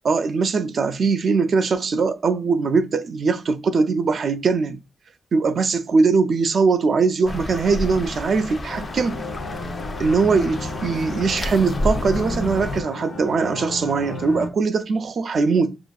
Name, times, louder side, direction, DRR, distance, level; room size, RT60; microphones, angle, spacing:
voice 1, 0.0-4.8 5.3-9.2 10.0-15.8, right 4 dB, 55° right, 0.3 m, -21 dB
sound 1, 7.3-12.8, left 1 dB, 35° left, 0.4 m, -30 dB
sound 2, 8.7-14.5, left 3 dB, 80° left, 0.7 m, -33 dB
7.1 x 2.5 x 2.2 m
wide cardioid pair, 170°, 0 cm